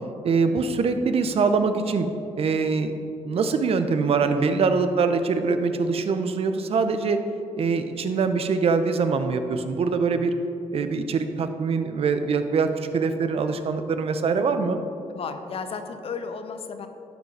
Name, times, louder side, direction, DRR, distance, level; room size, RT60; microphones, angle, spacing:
voice 1, 0.2-2.1 2.4-7.2 7.6-10.3 10.7-14.8, right 4 dB, 55° right, 9 dB, 0.7 m, -23 dB
voice 2, 15.1-16.9, left 5 dB, 55° left, 8 dB, 0.7 m, -34 dB
11.5 x 5.1 x 4.7 m, 2.8 s
cardioid pair, 95°, 12 cm